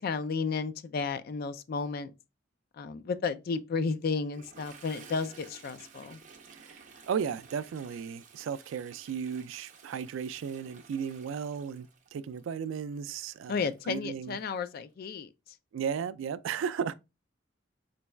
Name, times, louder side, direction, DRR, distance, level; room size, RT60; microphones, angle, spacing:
voice 1, 0.0-2.1 2.8-6.2 13.5-15.3, left 4 dB, 50° left, 0.3 m, -33 dB
Toilet flush, 4.2-14.8, right 5 dB, 40° right, 0.7 m, -54 dB
voice 2, 6.5-14.4 15.7-16.9, right 7 dB, 80° right, 0.3 m, -35 dB
3.9 x 2.3 x 3.2 m
head